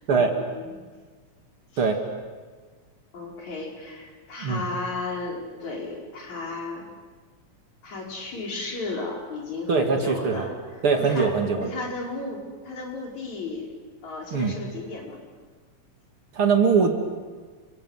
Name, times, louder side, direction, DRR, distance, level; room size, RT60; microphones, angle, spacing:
voice 1, 0.1-0.8 3.1-6.9 7.8-10.6 11.0-13.7 14.0-15.2, left 3 dB, 75° left, -1 dB, 6.2 m, -34 dB
voice 2, 9.7-10.4 10.8-11.7 14.3-14.5 16.3-17.0, right 5 dB, 50° right, 4 dB, 3.0 m, -22 dB
30.0 x 24.5 x 8.1 m, 1.4 s
omnidirectional pair, 3.3 m